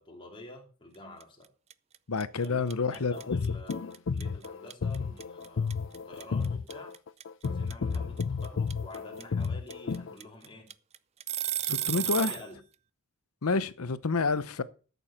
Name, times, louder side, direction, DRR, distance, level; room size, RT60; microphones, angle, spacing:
voice 1, 0.0-1.5 2.3-6.9 7.4-10.7 11.8-12.6, left 1 dB, 25° left, 2.9 m, -48 dB
sound 1, 1.2-1.4 1.7-12.5, right 12 dB, 30° right, 0.4 m, -33 dB
voice 2, 2.1-3.4 11.6-12.3 13.4-14.6, left 4 dB, 80° left, 0.8 m, -29 dB
sound 2, 3.1-10.1, left 5 dB, 60° left, 0.5 m, -32 dB
13.0 x 7.0 x 5.7 m
head